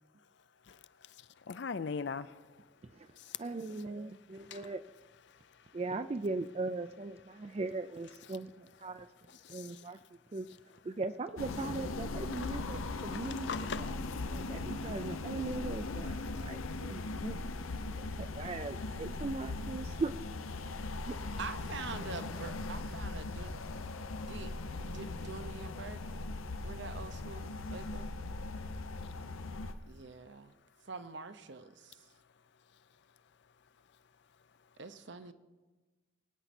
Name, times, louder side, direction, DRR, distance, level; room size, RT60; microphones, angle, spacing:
voice 1, 1.5-2.3 12.3-12.5 13.1-13.8, left 5 dB, 55° left, 0.5 m, -38 dB
voice 2, 3.4-4.8 5.7-9.1 9.5-10.0 10.3-10.5 10.8-13.5 14.3-17.4 17.9-20.1 21.1-21.2, right 3 dB, 30° right, 0.3 m, -39 dB
sound 1, 11.4-29.7, left 3 dB, 90° left, 0.8 m, -39 dB
voice 3, 21.2-23.6 24.2-24.5 24.8-26.0 26.6-28.1 29.9-30.6 30.8-32.1 34.8-35.3, right 4 dB, 60° right, 0.8 m, -45 dB
24.0 x 9.1 x 4.3 m
head